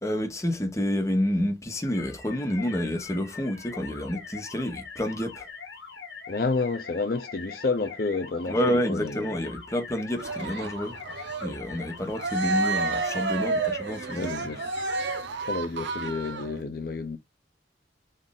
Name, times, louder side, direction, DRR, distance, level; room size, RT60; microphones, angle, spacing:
voice 1, 0.0-5.5 8.5-11.0 11.4-14.3, equal, 15° left, 0.9 m, -29 dB
sound 1, 1.8-15.2, left 5 dB, 85° left, 1.2 m, -43 dB
voice 2, 6.3-9.2 14.1-14.6 15.5-17.2, left 3 dB, 55° left, 0.6 m, -30 dB
Cheering, 10.2-16.6, right 3 dB, 80° right, 0.8 m, -30 dB
4.0 x 2.5 x 3.5 m
head